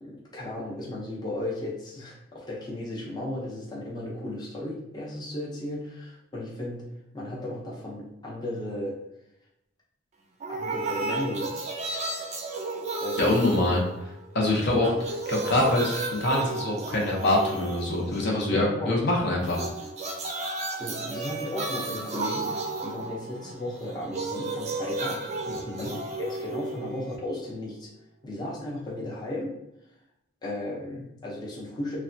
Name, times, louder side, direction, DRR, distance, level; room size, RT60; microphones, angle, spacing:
voice 1, 0.0-6.8 7.1-9.0 10.5-11.7 13.0-13.3 18.5-19.0 20.8-25.3 25.8-27.9 28.2-29.5 30.4-32.0, left 1 dB, 20° left, -5 dB, 0.6 m, -35 dB
sound 1, 10.4-14.4 14.7-18.5 19.4-27.4, right 3 dB, 35° right, 0.4 m, -33 dB
voice 2, 13.2-13.8 14.3-14.9 15.3-19.6 25.7-25.9, left 1 dB, 60° left, -1 dB, 0.7 m, -24 dB
3.2 x 2.2 x 2.5 m, 0.86 s
head